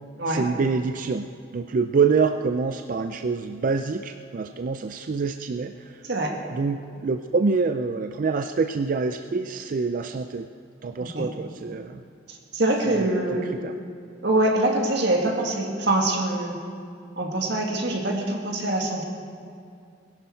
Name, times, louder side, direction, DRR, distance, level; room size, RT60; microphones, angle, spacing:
voice 1, 0.3-1.3 1.5-6.0 6.5-10.5 10.8-12.0 12.9-13.7, right 4 dB, 45° right, 7 dB, 0.4 m, -26 dB
voice 2, 11.0-11.3 12.3-13.4 14.2-16.6 17.2-19.0, right 1 dB, 60° right, 1 dB, 1.9 m, -24 dB
21.0 x 11.0 x 4.5 m, 2.3 s
head